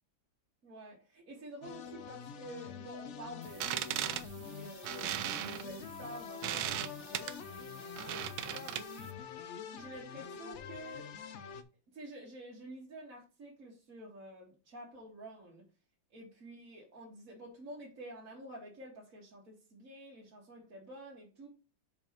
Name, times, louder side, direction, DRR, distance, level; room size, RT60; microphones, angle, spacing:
voice 1, 0.6-9.4 9.7-11.1 11.9-15.7 16.1-21.5, right 1 dB, 45° right, -4 dB, 2.1 m, -50 dB
sound 1, 1.6-11.6, left 6 dB, 75° left, 0.6 m, -46 dB
sound 2, 3.4-9.1, right 12 dB, 80° right, 1.5 m, -38 dB
5.5 x 5.0 x 5.1 m, 0.34 s
omnidirectional pair, 2.2 m